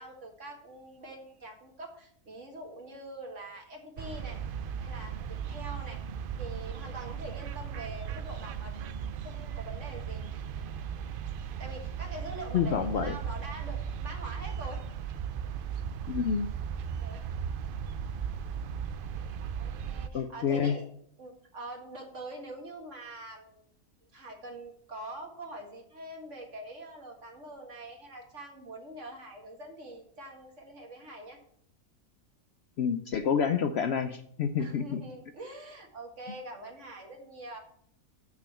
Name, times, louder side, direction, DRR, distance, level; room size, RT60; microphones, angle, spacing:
voice 1, 0.0-4.4 4.8-6.0 6.4-8.7 9.2-10.2 11.6-14.8 17.0-17.3 19.2-20.9 21.2-23.6 24.1-31.4 34.6-37.6, right 1 dB, 55° right, 2 dB, 2.0 m, -44 dB
sound 1, 4.0-20.1, right 7 dB, 75° right, 0.5 m, -37 dB
voice 2, 12.5-13.1 16.1-16.5 20.1-20.7 32.8-35.0, left 7 dB, 65° left, 8 dB, 0.7 m, -28 dB
6.7 x 6.0 x 7.1 m, 0.64 s
omnidirectional pair, 1.5 m